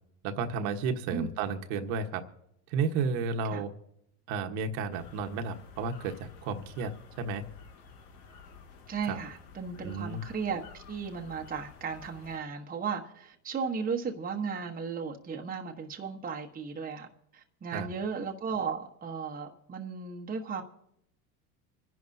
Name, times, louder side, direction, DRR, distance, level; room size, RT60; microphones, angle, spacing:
voice 1, 0.2-2.2 2.7-3.7 4.3-7.4 9.1-9.2 9.8-10.2 17.7-17.9, right 5 dB, 60° right, 1.4 m, -32 dB
sound 1, 4.9-12.4, left 5 dB, 60° left, 2.4 m, -52 dB
voice 2, 8.9-17.1 17.3-20.6, right 5 dB, 20° right, 1.2 m, -35 dB
26.0 x 11.0 x 2.8 m
hypercardioid pair, 105°, 46 cm